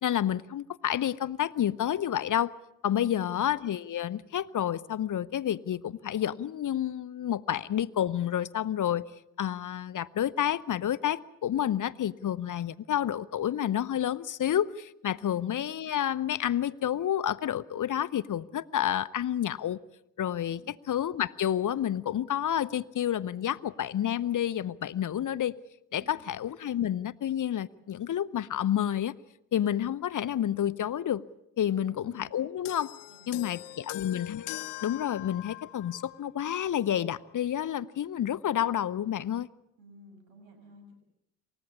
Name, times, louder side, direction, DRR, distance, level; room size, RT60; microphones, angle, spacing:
voice 1, 0.0-2.5 2.8-9.1 9.4-19.8 20.2-25.5 25.9-29.1 29.5-31.2 31.6-32.9 33.3-39.5, left 10 dB, 45° left, 0.8 m, -29 dB
voice 2, 31.6-32.4 33.1-33.9 39.8-40.9, right 1 dB, 80° right, 6.2 m, -55 dB
sound 1, 32.7-36.3 37.2-37.3, left 16 dB, 75° left, 0.9 m, -42 dB
28.0 x 15.5 x 8.4 m
hypercardioid pair, 45°, 43 cm